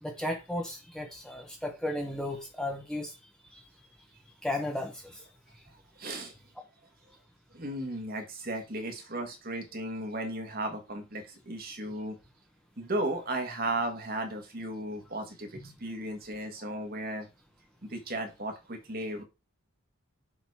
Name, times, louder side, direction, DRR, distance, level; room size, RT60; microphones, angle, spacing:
voice 1, 0.0-3.2 3.5-3.6 4.4-5.2 15.5-15.7, left 1 dB, 5° left, 1.0 m, -35 dB
voice 2, 6.0-6.3 7.5-12.2 12.8-17.3 17.8-19.2, right 1 dB, 40° right, 1.5 m, -35 dB
7.1 x 4.0 x 4.7 m
head